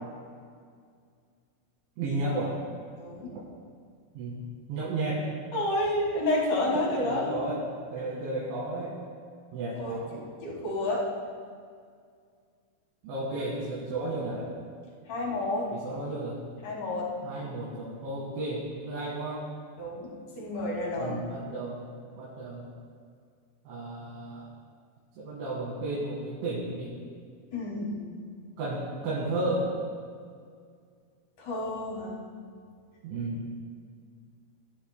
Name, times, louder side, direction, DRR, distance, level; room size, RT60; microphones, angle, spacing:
voice 1, 2.0-2.6 4.2-4.4 4.7-5.3 6.7-7.6 7.9-9.0 9.5-10.1 13.0-14.5 15.7-16.4 17.2-19.5 21.0-21.8 22.2-22.7 23.7-24.5 25.2-26.9 28.6-29.7 33.0-33.5, right 2 dB, 70° right, -6 dB, 4.2 m, -33 dB
voice 2, 2.9-3.3 5.5-7.4 9.8-11.0 15.1-15.7 16.6-17.1 19.8-20.1 20.4-21.2 27.5-27.9 31.4-32.2, left 1 dB, 50° left, -4 dB, 3.1 m, -30 dB
20.5 x 11.5 x 2.2 m, 2.1 s
omnidirectional pair, 5.8 m